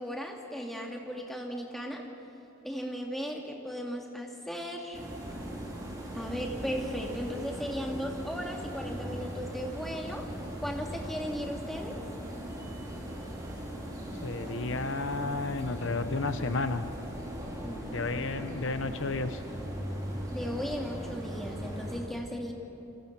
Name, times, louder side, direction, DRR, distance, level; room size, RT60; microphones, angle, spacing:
voice 1, 0.0-2.0 2.6-5.0 6.1-10.3 10.6-12.0 17.6-18.7 20.3-22.5, equal, ahead, 0 dB, 2.4 m, -36 dB
sound 1, 4.9-22.0, equal, 15° right, 3.8 m, -39 dB
voice 2, 14.2-16.8 17.9-19.4, left 3 dB, 65° left, 10 dB, 0.9 m, -32 dB
28.5 x 25.5 x 6.0 m, 2.9 s
head